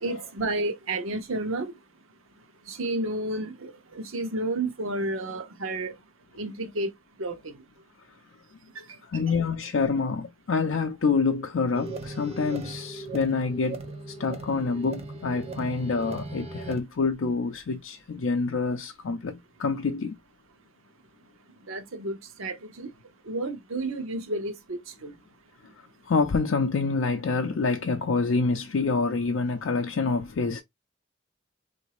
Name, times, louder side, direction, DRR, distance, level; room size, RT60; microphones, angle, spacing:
voice 1, 0.0-1.7 2.7-5.9 6.4-6.9 7.2-7.5 8.8-9.0 21.7-22.9 23.3-25.1, right 2 dB, 75° right, 0.8 m, -31 dB
voice 2, 9.0-13.8 14.1-20.2 26.1-30.6, left 4 dB, 70° left, 0.5 m, -27 dB
sound 1, 11.7-16.8, right 3 dB, 30° right, 0.6 m, -38 dB
3.9 x 2.6 x 2.9 m
head